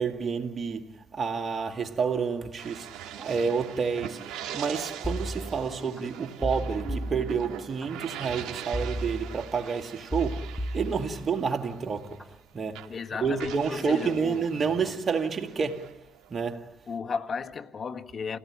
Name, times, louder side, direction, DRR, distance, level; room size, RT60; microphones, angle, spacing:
voice 1, 0.0-16.9, right 5 dB, 45° right, 2.2 m, -30 dB
sound 1, 2.6-12.4 12.7-16.6, right 9 dB, 80° right, 2.0 m, -42 dB
sound 2, 5.0-6.0 6.4-7.9 8.7-9.7 10.1-11.6 12.0-12.4, equal, 10° left, 1.5 m, -34 dB
voice 2, 12.9-14.9 16.9-18.4, left 5 dB, 50° left, 1.5 m, -35 dB
28.5 x 17.5 x 8.7 m
supercardioid pair, 65°, 0 cm